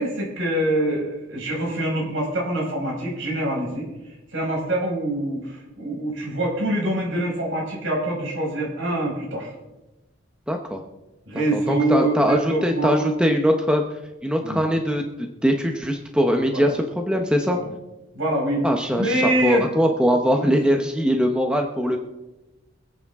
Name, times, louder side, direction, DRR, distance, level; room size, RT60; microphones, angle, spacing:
voice 1, 0.0-3.9 4.3-9.5 11.3-13.2 14.4-14.6 16.5-16.7 17.5-17.7 18.1-18.7 18.9-19.7 20.3-20.5, right 1 dB, 70° right, -2 dB, 5.7 m, -25 dB
voice 2, 10.5-10.8 11.5-13.8 14.2-17.6 18.6-22.0, equal, 5° right, 3 dB, 0.8 m, -21 dB
25.0 x 8.5 x 3.7 m, 1.0 s
head